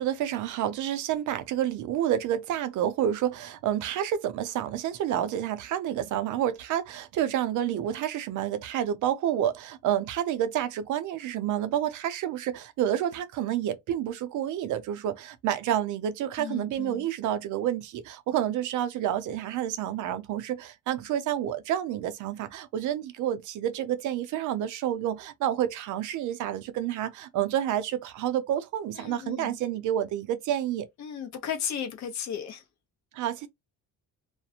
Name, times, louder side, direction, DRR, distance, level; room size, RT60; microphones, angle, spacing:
voice 1, 0.0-30.9 33.1-33.5, right 11 dB, 60° right, 0.5 m, -29 dB
voice 2, 16.4-17.1 29.0-29.6 31.0-32.6, left 8 dB, 50° left, 0.8 m, -35 dB
2.4 x 2.1 x 2.7 m
cardioid pair, 170°, 35 cm